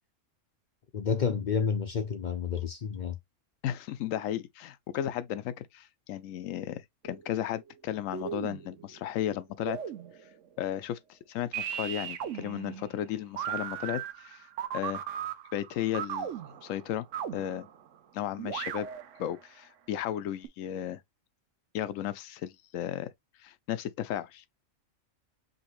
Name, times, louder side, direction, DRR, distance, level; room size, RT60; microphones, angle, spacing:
voice 1, 0.9-3.2, left 6 dB, 55° left, 0.5 m, -30 dB
voice 2, 3.6-9.8 10.6-14.5 14.7-15.0 15.5-16.3 16.6-17.1 17.3-17.7 18.1-18.9 19.2-21.0 21.7-23.1 23.4-24.4, left 11 dB, 90° left, 1.0 m, -34 dB
sound 1, 7.1-7.7 8.1-9.1 9.6-10.4 11.5-18.0 18.4-19.4 20.4-20.5, right 9 dB, 75° right, 1.1 m, -37 dB
5.3 x 2.9 x 3.1 m
omnidirectional pair, 1.3 m